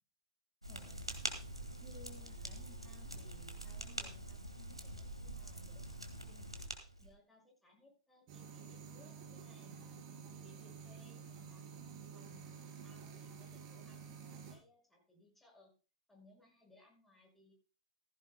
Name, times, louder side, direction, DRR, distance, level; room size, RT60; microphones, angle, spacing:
sound 1, 0.6-7.1, right 1 dB, 90° right, 1.8 m, -45 dB
voice 1, 0.7-1.0 1.8-6.6 7.0-11.7 12.1-15.7 16.1-17.5, left 2 dB, 5° left, 0 dB, 6.0 m, -63 dB
sound 2, 8.3-14.6, right 6 dB, 40° right, 4.3 m, -51 dB
15.5 x 15.0 x 2.2 m, 0.35 s
figure-of-eight pair, 100°, 3 cm